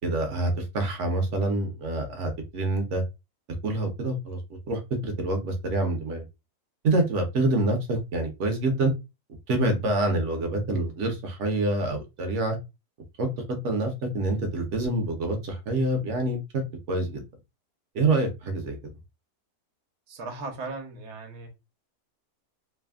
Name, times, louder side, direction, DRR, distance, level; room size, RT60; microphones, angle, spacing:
voice 1, 0.0-3.0 3.6-4.4 4.7-6.2 6.8-8.9 9.5-12.6 13.2-16.6 16.9-17.2 17.9-18.8, right 2 dB, 60° right, 0.9 m, -26 dB
voice 2, 20.1-21.5, right 3 dB, 85° right, 1.3 m, -37 dB
3.2 x 2.0 x 2.2 m
omnidirectional pair, 1.6 m